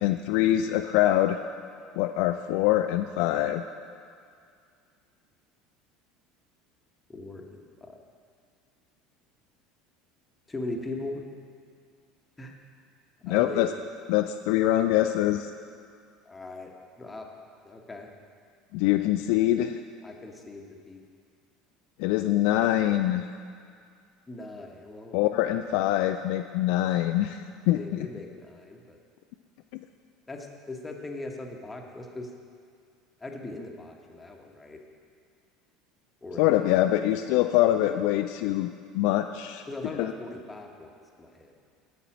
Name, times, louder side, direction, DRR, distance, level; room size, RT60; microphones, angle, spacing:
voice 1, 0.0-1.4 2.0-3.6 13.2-13.7 14.1-15.5 18.7-19.8 22.0-23.3 25.1-28.1 36.4-38.7 38.9-39.6 40.0-40.1, left 14 dB, 55° left, 7 dB, 0.3 m, -24 dB
voice 2, 7.1-8.0 10.5-11.2 12.4-12.5 13.2-13.7 16.2-16.7 17.0-17.3 17.6-18.1 20.0-21.0 24.3-25.2 25.7-25.8 27.7-29.0 30.3-32.3 33.2-34.8 36.2-36.9 39.7-41.6, left 2 dB, 15° left, 2 dB, 1.2 m, -39 dB
8.5 x 7.9 x 6.1 m, 2.2 s
figure-of-eight pair, 70°, 0 cm